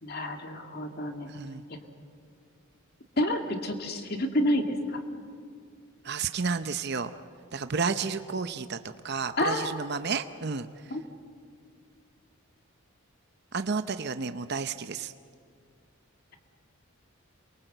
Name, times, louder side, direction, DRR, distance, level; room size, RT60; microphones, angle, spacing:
voice 1, 0.0-1.3 3.2-5.0 9.4-9.7 10.9-11.0, left 1 dB, 45° left, 5 dB, 2.2 m, -29 dB
voice 2, 1.3-1.6 6.0-7.1 7.5-11.0 13.5-15.1, right 5 dB, 50° right, 10 dB, 0.7 m, -32 dB
28.0 x 23.0 x 8.0 m, 2.2 s
head